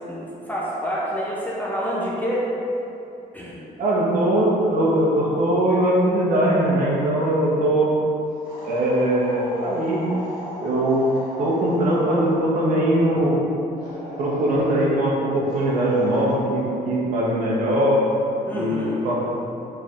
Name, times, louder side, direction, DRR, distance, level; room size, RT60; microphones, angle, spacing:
voice 1, 0.1-2.4 3.3-3.6 18.5-19.0, equal, 10° left, -6 dB, 0.4 m, -27 dB
voice 2, 3.8-7.9 8.6-10.0 10.6-11.1 11.4-13.4 14.2-18.0 18.5-19.2, right 1 dB, 55° right, -5 dB, 0.7 m, -21 dB
sound 1, 8.4-12.4 13.8-15.0 15.5-16.4, equal, 85° left, 1.2 m, -37 dB
4.1 x 3.2 x 2.4 m, 2.8 s
cardioid pair, 175°, 16 cm